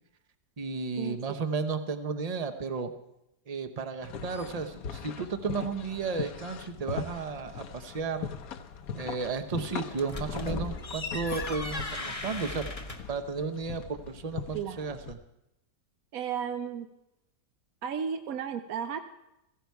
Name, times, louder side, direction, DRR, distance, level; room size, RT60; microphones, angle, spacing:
voice 1, 0.6-2.9 3.5-8.3 8.9-12.6 13.1-15.2, right 4 dB, 35° right, 8 dB, 0.6 m, -33 dB
sound 1, 4.0-15.1, left 7 dB, 60° left, 1.1 m, -41 dB
sound 2, 9.9-13.2, left 2 dB, 25° left, 0.9 m, -36 dB
voice 2, 14.5-14.9 16.1-16.9 17.8-19.0, right 7 dB, 65° right, 7 dB, 1.0 m, -33 dB
16.0 x 15.0 x 4.7 m, 0.88 s
omnidirectional pair, 1.9 m